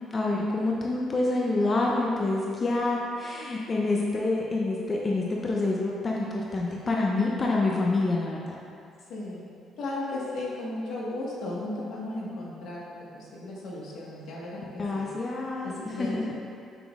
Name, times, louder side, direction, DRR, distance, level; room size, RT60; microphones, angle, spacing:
voice 1, 0.1-8.6 14.8-16.2, left 2 dB, 30° left, -3 dB, 0.6 m, -27 dB
voice 2, 9.1-9.4 9.8-12.8 13.1-14.6 14.9-15.1 15.6-16.2, left 2 dB, 75° left, -4 dB, 1.4 m, -35 dB
7.0 x 5.9 x 2.4 m, 2.4 s
cardioid pair, 130°, 0 cm